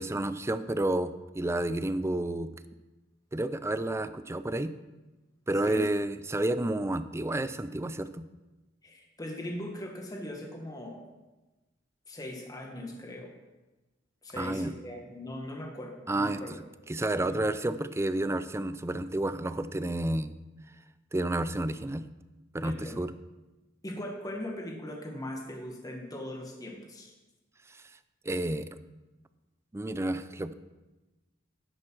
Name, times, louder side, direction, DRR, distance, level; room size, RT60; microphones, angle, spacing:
voice 1, 0.0-2.5 3.3-4.7 5.5-8.2 14.4-14.7 16.1-16.4 16.9-20.3 21.1-22.0 22.5-23.1 28.3-28.7 29.7-30.5, right 1 dB, 15° right, 12 dB, 0.5 m, -30 dB
voice 2, 8.8-11.0 12.1-13.3 14.2-16.5 17.2-17.5 22.6-23.0 23.8-27.1, left 1 dB, 20° left, 0 dB, 1.5 m, -40 dB
10.5 x 7.6 x 6.2 m, 1.1 s
head